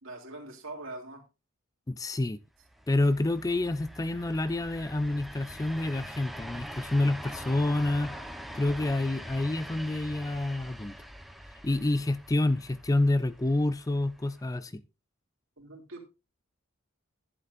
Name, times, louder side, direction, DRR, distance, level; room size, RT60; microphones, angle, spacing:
voice 1, 0.0-1.2 15.6-16.0, right 2 dB, 70° right, 2.9 m, -42 dB
voice 2, 1.9-2.4 2.9-8.1 8.5-11.0 11.6-14.8, left 2 dB, 15° left, 0.4 m, -28 dB
sound 1, 2.6-14.6, equal, ahead, 1.0 m, -44 dB
11.0 x 10.5 x 2.6 m
head